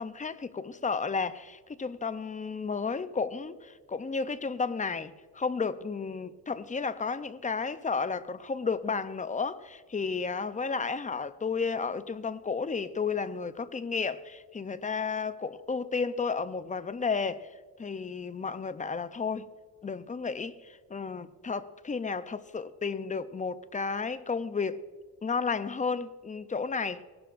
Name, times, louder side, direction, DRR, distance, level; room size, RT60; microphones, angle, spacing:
voice 1, 0.0-17.5 17.8-19.5 19.8-24.8 25.2-27.0, left 5 dB, 20° left, 0.6 m, -32 dB
19.5 x 12.0 x 2.6 m
cardioid pair, 100°, 38 cm